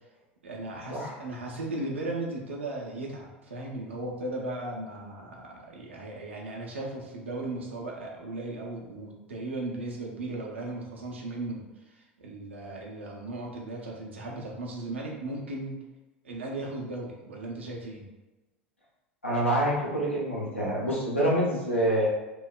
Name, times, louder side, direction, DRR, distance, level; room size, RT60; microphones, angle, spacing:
voice 1, 0.4-15.8 16.2-18.1, right 2 dB, 75° right, -1 dB, 0.6 m, -36 dB
voice 2, 19.2-22.1, right 1 dB, 90° left, -5 dB, 0.7 m, -26 dB
2.9 x 2.0 x 2.3 m, 1.1 s
figure-of-eight pair, 80°, 6 cm